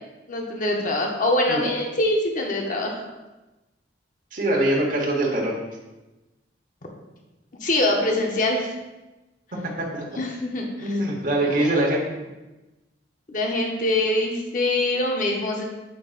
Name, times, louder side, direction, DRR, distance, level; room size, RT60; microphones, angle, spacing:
voice 1, 0.3-3.0 7.6-8.7 10.2-11.0 11.5-11.6 13.3-15.6, left 1 dB, 45° left, 1 dB, 0.8 m, -24 dB
voice 2, 4.3-5.5 9.8-10.0 10.8-12.0, right 1 dB, 45° right, -2 dB, 1.2 m, -23 dB
7.6 x 5.2 x 2.5 m, 1.1 s
head